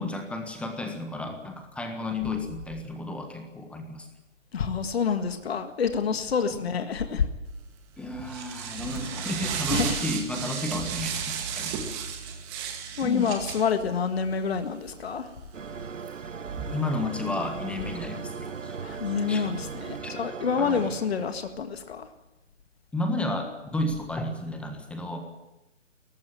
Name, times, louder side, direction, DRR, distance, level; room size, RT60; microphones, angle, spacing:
voice 1, 0.0-4.1 6.5-6.6 8.0-11.7 13.0-13.3 16.7-18.8 19.3-19.4 20.0-20.1 20.6-20.8 22.9-25.2, left 2 dB, 5° left, 4 dB, 1.5 m, -32 dB
voice 2, 4.5-7.3 9.7-10.0 13.0-15.3 18.8-22.1, left 6 dB, 55° left, 8 dB, 1.9 m, -27 dB
sound 1, 7.6-20.0, right 6 dB, 20° right, 2.2 m, -36 dB
sound 2, 15.5-21.5, right 6 dB, 80° right, 1.1 m, -38 dB
18.5 x 15.0 x 9.5 m, 0.98 s
figure-of-eight pair, 140°, 37 cm